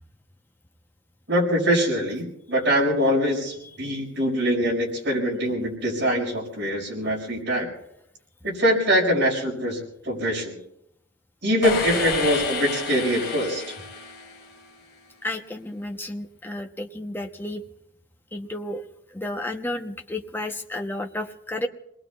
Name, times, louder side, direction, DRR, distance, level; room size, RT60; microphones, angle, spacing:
voice 1, 1.3-7.7 8.4-10.6 11.4-13.7, equal, 65° right, -3 dB, 5.7 m, -23 dB
sound 1, 11.6-14.8, left 5 dB, 55° left, 1.6 m, -30 dB
voice 2, 15.2-17.6 18.3-18.8 19.1-21.7, left 1 dB, 10° left, 3 dB, 0.9 m, -32 dB
28.5 x 20.5 x 2.4 m, 0.76 s
head